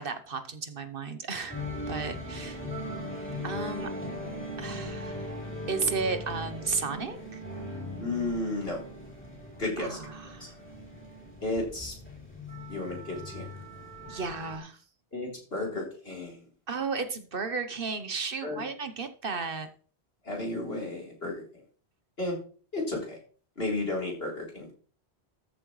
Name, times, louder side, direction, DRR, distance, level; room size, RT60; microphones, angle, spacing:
voice 1, 0.0-1.6 1.9-2.6 3.4-3.9 4.6-5.4 5.7-7.4 9.8-10.6 14.1-14.8 16.7-19.7, right 4 dB, 60° right, 10 dB, 1.1 m, -34 dB
sound 1, 1.5-14.6, left 1 dB, 10° left, 4.1 m, -39 dB
voice 2, 8.0-8.8 9.6-10.0 10.4-10.5 11.4-11.9 12.7-13.5 15.1-16.4 18.4-18.6 20.2-21.4 22.2-22.4 22.7-23.2 23.6-24.7, left 2 dB, 65° left, -2 dB, 4.0 m, -33 dB
13.5 x 7.5 x 3.2 m, 0.41 s
omnidirectional pair, 1.1 m